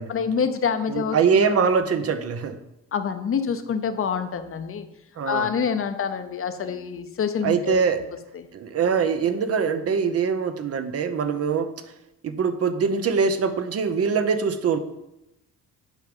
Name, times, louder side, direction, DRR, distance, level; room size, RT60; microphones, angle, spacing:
voice 1, 0.1-1.5 2.9-4.9 5.3-8.0 8.3-8.5, left 6 dB, 45° left, 9 dB, 0.8 m, -27 dB
voice 2, 0.9-2.6 5.2-5.5 7.4-8.0 8.5-11.7 12.2-14.8, right 6 dB, 50° right, 9 dB, 0.8 m, -23 dB
8.3 x 4.8 x 5.3 m, 0.90 s
cardioid pair, 90°, 30 cm